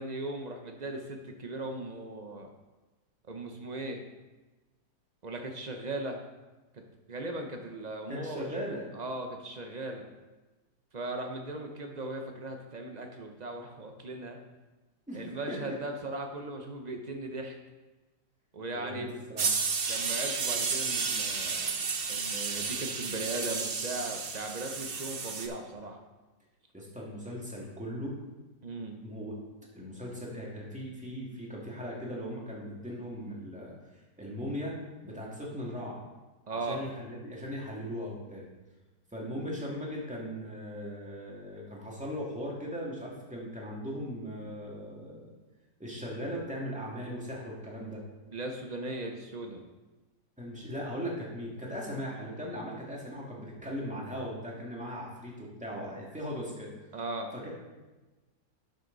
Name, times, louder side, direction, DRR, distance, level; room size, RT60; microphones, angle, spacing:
voice 1, 0.0-2.5 3.3-4.0 5.2-6.2 6.7-6.8 7.1-8.4 8.9-10.0 10.9-14.4 15.1-17.6 18.5-19.1 19.9-21.7 22.1-26.0 28.6-29.0 36.5-36.8 48.3-49.6 56.9-57.3, right 2 dB, 65° right, 4 dB, 0.4 m, -38 dB
voice 2, 8.1-8.9 15.1-15.8 18.7-19.5 26.7-28.1 29.0-29.3 29.7-33.7 34.2-34.7 35.0-36.0 36.5-38.4 39.1-45.3 45.8-48.0 50.4-56.7 57.3-57.5, equal, 5° right, -4 dB, 2.0 m, -38 dB
sound 1, 19.4-25.5, right 5 dB, 45° right, 0.8 m, -32 dB
11.5 x 6.4 x 4.0 m, 1.2 s
omnidirectional pair, 1.9 m